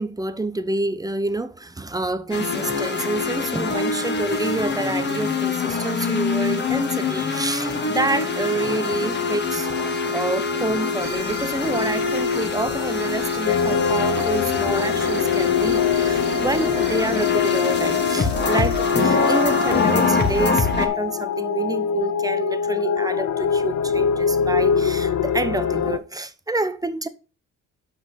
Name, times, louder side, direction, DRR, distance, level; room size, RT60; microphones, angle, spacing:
voice 1, 0.0-27.1, right 2 dB, 10° right, 0.8 m, -28 dB
sound 1, 2.3-20.9, left 4 dB, 35° left, 1.7 m, -24 dB
sound 2, 11.0-20.5, right 10 dB, 65° right, 0.9 m, -38 dB
sound 3, 13.5-26.0, left 7 dB, 70° left, 0.8 m, -24 dB
6.0 x 5.6 x 6.7 m
cardioid pair, 90°, 30 cm